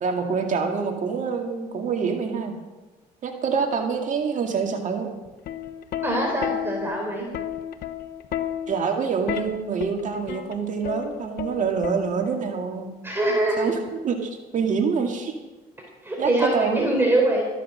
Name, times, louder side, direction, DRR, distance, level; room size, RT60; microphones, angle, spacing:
voice 1, 0.0-2.5 3.2-5.1 8.7-12.9 13.6-13.7 14.0-15.3 16.2-16.9, right 5 dB, 50° right, 3 dB, 2.0 m, -26 dB
Plucked string instrument, 5.3-12.5 13.6-13.9, left 10 dB, 65° left, 1.1 m, -32 dB
voice 2, 6.0-7.3 13.0-13.7 16.0-17.4, right 1 dB, 15° right, -1 dB, 4.1 m, -23 dB
14.0 x 10.5 x 6.4 m, 1.2 s
cardioid pair, 110°, 17 cm